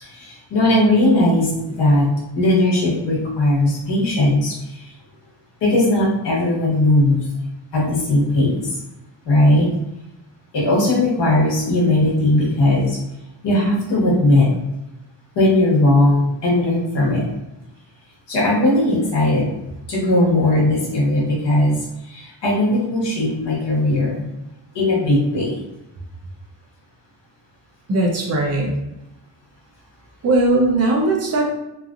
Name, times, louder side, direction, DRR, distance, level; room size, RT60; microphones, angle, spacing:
voice 1, 0.0-2.1 2.3-4.9 5.6-7.3 7.7-8.8 9.2-9.7 10.5-13.0 13.4-14.5 15.3-17.3 18.3-19.5 19.9-24.3 24.7-25.6, left 1 dB, 65° left, -5 dB, 1.3 m, -18 dB
voice 2, 27.9-28.7 30.2-31.5, right 2 dB, 35° right, 0 dB, 0.6 m, -18 dB
3.0 x 2.5 x 2.4 m, 0.93 s
wide cardioid pair, 175°, 45 cm